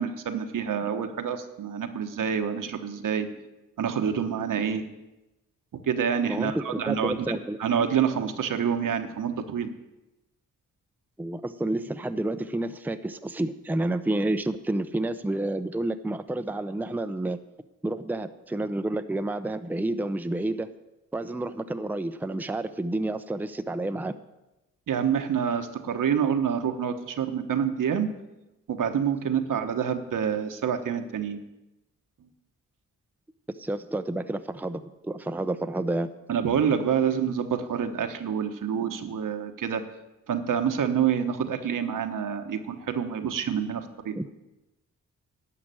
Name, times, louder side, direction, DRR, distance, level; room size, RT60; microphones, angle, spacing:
voice 1, 0.0-3.3 3.8-4.8 5.9-9.7 24.9-28.1 28.7-31.4 36.3-39.8 40.3-44.2, right 7 dB, 70° right, 7 dB, 1.2 m, -27 dB
voice 2, 6.3-7.6 11.2-17.4 17.8-20.7 21.1-24.1 33.6-36.1 44.2-44.3, right 2 dB, 5° right, 9 dB, 0.6 m, -30 dB
11.5 x 5.9 x 9.0 m, 0.99 s
cardioid pair, 55°, 33 cm